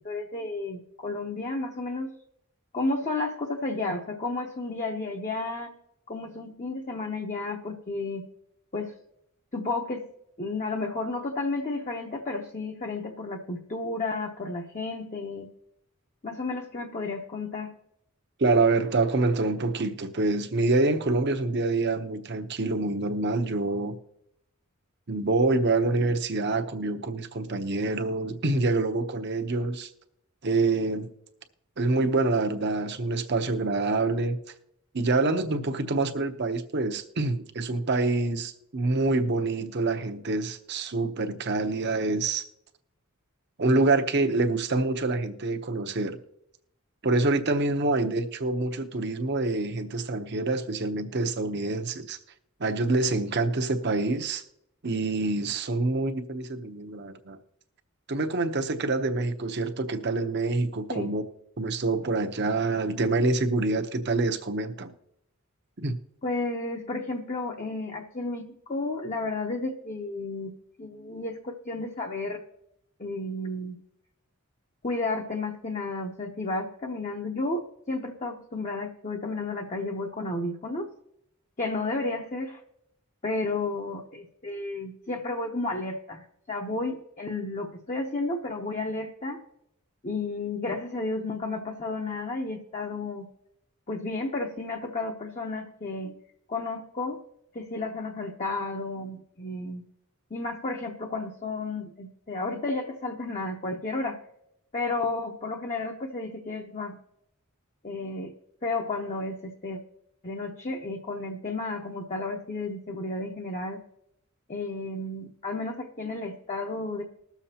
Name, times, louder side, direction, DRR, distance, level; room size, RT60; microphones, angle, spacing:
voice 1, 0.0-2.1 2.7-5.8 6.1-8.3 8.7-8.9 9.5-10.1 10.4-15.5 16.2-17.7 60.9-61.1 66.2-70.5 70.8-72.4 73.0-73.8 74.8-80.9 81.6-82.6 83.2-89.4 90.0-93.3 93.9-96.2 96.5-97.2 97.5-99.8 100.3-104.2 104.7-107.0 107.8-108.3 108.6-109.8 110.2-113.8 114.5-117.0, left 2 dB, 35° left, 1 dB, 0.8 m, -32 dB
voice 2, 18.4-24.0 25.1-29.9 30.4-31.1 31.8-34.4 34.9-42.4 43.6-46.2 47.0-52.2 52.6-54.4 54.8-57.4 58.1-61.2 61.6-64.9 65.8-66.0, right 3 dB, 50° right, 7 dB, 0.8 m, -26 dB
20.5 x 7.1 x 2.8 m, 0.78 s
head